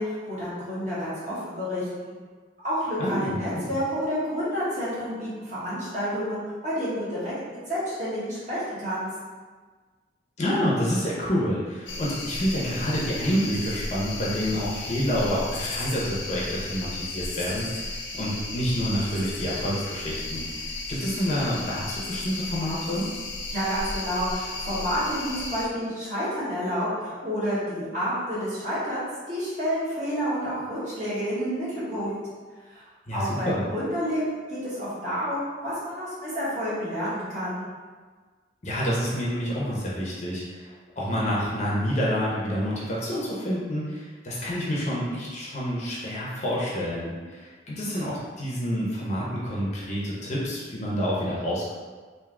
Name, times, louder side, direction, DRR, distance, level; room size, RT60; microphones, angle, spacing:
voice 1, 0.0-2.1 2.6-7.3 7.7-9.1 23.5-32.2 32.7-32.8 33.1-37.7, equal, 40° right, -10 dB, 1.4 m, -29 dB
voice 2, 3.0-3.7 10.4-23.1 33.1-33.6 38.6-51.7, equal, 35° left, -6 dB, 0.7 m, -28 dB
sound 1, 11.9-25.7, left 2 dB, 75° left, 0.5 m, -34 dB
3.5 x 2.6 x 3.6 m, 1.5 s
head